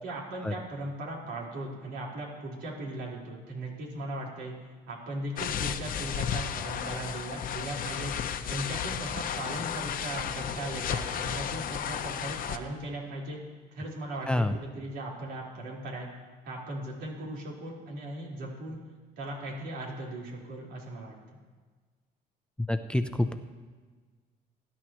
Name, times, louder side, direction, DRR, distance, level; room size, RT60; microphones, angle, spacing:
voice 1, 0.0-4.5 4.9-8.1 8.5-13.4 13.7-16.1 16.4-18.8 19.2-21.4, right 1 dB, 80° right, -4 dB, 4.4 m, -38 dB
sound 1, 5.4-12.6, left 8 dB, 55° left, 0.8 m, -33 dB
voice 2, 22.7-23.3, left 1 dB, 5° left, 8 dB, 0.6 m, -27 dB
23.0 x 11.5 x 3.1 m, 1.4 s
cardioid pair, 110°, 17 cm